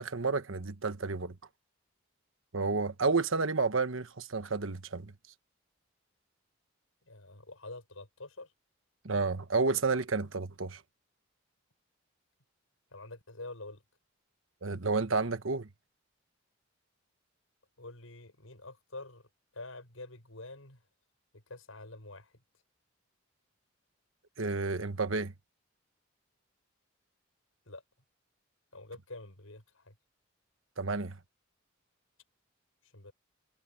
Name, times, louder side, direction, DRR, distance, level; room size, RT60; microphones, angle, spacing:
voice 1, 0.0-1.3 2.5-5.1 9.0-10.8 14.6-15.7 24.4-25.3 30.8-31.2, right 4 dB, 70° right, 1.3 m, -31 dB
voice 2, 7.1-8.5 12.9-13.8 17.8-19.3 19.5-20.8 21.3-22.3 27.7-27.8 28.7-29.9 32.8-33.1, left 2 dB, 85° left, 6.2 m, -47 dB
head